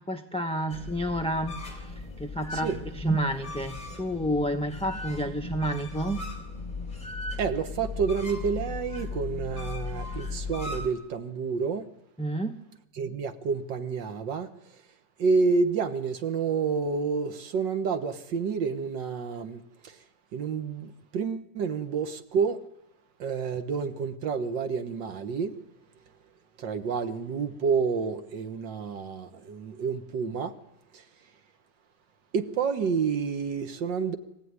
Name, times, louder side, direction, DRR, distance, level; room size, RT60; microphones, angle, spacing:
voice 1, 0.0-2.7 3.0-6.2 12.2-12.6, right 1 dB, 5° left, 0.7 m, -30 dB
sound 1, 0.7-10.9, left 3 dB, 25° left, 3.9 m, -37 dB
voice 2, 7.4-11.8 13.0-14.8 15.2-20.0 20.3-22.6 23.2-25.6 26.6-30.5 30.9-31.1 32.3-34.2, right 5 dB, 80° right, 2.0 m, -29 dB
24.0 x 15.5 x 9.7 m
omnidirectional pair, 1.9 m